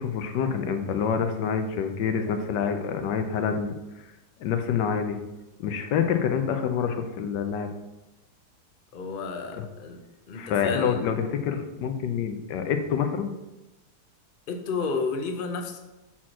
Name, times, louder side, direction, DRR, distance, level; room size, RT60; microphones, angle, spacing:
voice 1, 0.0-3.7 4.4-5.2 5.6-7.7 9.6-9.7 10.3-13.3, left 7 dB, 85° left, 7 dB, 1.4 m, -27 dB
voice 2, 8.9-10.0 10.3-11.0 14.5-15.8, left 4 dB, 50° left, 5 dB, 0.6 m, -31 dB
5.9 x 4.3 x 6.0 m, 1.0 s
omnidirectional pair, 1.8 m